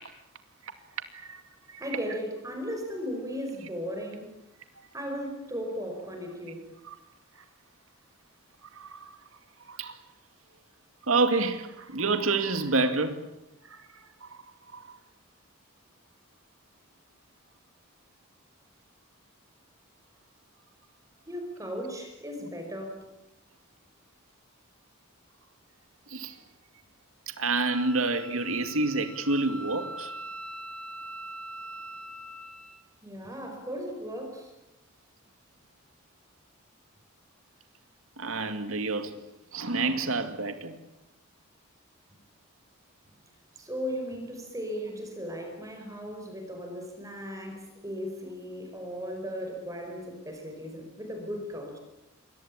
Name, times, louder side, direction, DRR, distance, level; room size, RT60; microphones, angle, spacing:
voice 1, 1.8-4.4 4.9-6.7 21.3-23.1 33.0-34.5 42.1-42.2 43.5-51.8, equal, 15° right, 5.3 m, -36 dB
voice 2, 8.7-9.1 9.7-10.0 11.1-13.2 13.7-13.9 14.2-14.3 14.7-15.0 26.1-26.4 27.3-30.1 38.2-39.1 39.5-40.7, right 3 dB, 80° right, 2.3 m, -28 dB
Wind instrument woodwind instrument, 27.7-32.8, right 1 dB, 5° left, 2.1 m, -42 dB
28.0 x 22.5 x 8.8 m
head